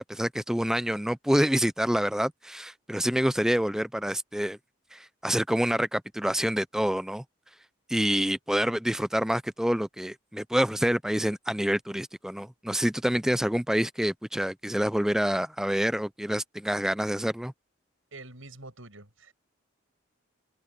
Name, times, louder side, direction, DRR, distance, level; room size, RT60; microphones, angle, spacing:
voice 1, 0.0-4.6 4.9-7.2 7.9-17.5, equal, ahead, 0.4 m, -27 dB
voice 2, 18.1-19.3, right 2 dB, 75° right, 7.8 m, -46 dB
open air
head